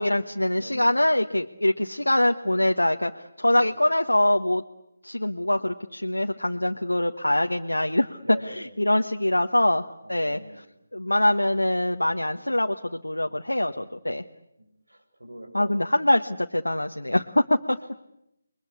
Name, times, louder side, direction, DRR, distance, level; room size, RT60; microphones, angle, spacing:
voice 1, 0.0-4.6 5.0-8.2 8.5-10.4 10.9-14.2 15.5-17.8, left 1 dB, 80° left, 4 dB, 1.3 m, -24 dB
voice 2, 0.5-0.9 3.5-3.8 8.2-8.8 10.0-10.6 13.2-13.9 14.6-15.8, right 1 dB, 75° right, 4 dB, 7.8 m, -43 dB
29.5 x 22.5 x 8.3 m, 0.82 s
figure-of-eight pair, 155°, 0 cm